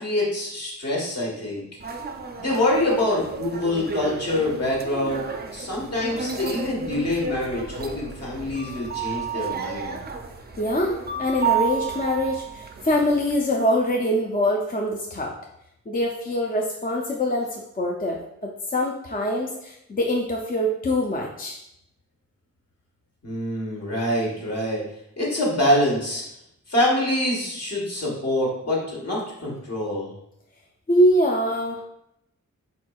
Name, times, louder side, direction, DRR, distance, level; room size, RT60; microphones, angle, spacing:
voice 1, 0.0-1.6 2.4-5.3 5.5-9.9 23.2-24.8 25.2-26.2 26.7-30.1, left 1 dB, 55° left, -3 dB, 1.4 m, -25 dB
sound 1, 1.8-13.4, right 6 dB, 35° right, 0.4 m, -32 dB
voice 2, 10.6-15.3 15.9-21.6 30.9-31.8, equal, 30° left, -1 dB, 0.4 m, -24 dB
4.3 x 4.3 x 2.3 m, 0.79 s
wide cardioid pair, 110°, 30 cm